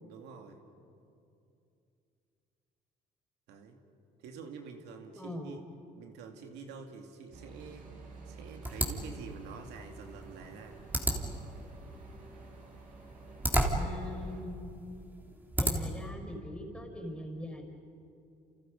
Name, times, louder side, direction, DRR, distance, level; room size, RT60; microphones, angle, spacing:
voice 1, 0.0-0.6 3.5-3.8 4.2-5.6 5.9-7.9 8.3-10.8, right 5 dB, 85° right, 4 dB, 2.5 m, -47 dB
voice 2, 5.2-5.6 13.8-14.8 15.6-17.6, left 1 dB, 5° left, 3 dB, 5.4 m, -41 dB
sound 1, 7.3-14.4, right 3 dB, 50° right, 6.8 m, -50 dB
sound 2, 8.6-16.1, right 1 dB, 10° right, 3.1 m, -35 dB
29.5 x 29.0 x 5.4 m, 2.6 s
cardioid pair, 110°, 17 cm